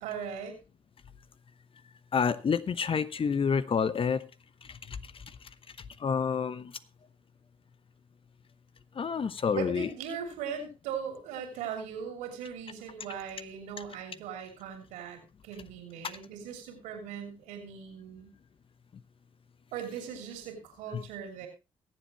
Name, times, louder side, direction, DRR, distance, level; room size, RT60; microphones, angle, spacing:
voice 1, 0.0-0.6 9.5-18.3 19.7-21.5, right 7 dB, 80° right, 5 dB, 3.1 m, -39 dB
voice 2, 2.1-4.2 4.7-5.0 6.0-6.7 8.9-9.9 20.9-21.0, left 6 dB, 45° left, 15 dB, 1.0 m, -28 dB
22.5 x 7.7 x 3.1 m, 0.26 s
hypercardioid pair, 45°, 12 cm